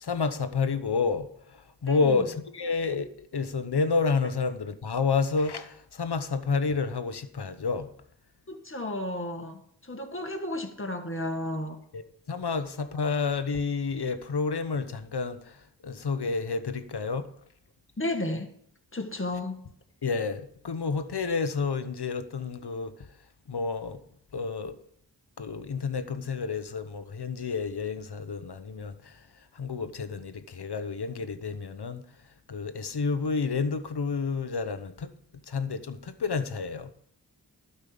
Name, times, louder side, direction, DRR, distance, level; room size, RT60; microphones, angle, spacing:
voice 1, 0.0-7.9 11.9-12.0 12.3-17.3 20.0-22.9 23.5-24.0 24.3-24.8 25.4-29.2 29.5-32.0 32.5-35.1 35.5-36.9, left 4 dB, 65° left, 1.0 m, -30 dB
voice 2, 8.5-9.6 9.9-11.8 18.0-18.5 18.9-19.6, left 1 dB, 30° left, 1.7 m, -32 dB
12.0 x 5.6 x 7.0 m
cardioid pair, 40°, 43 cm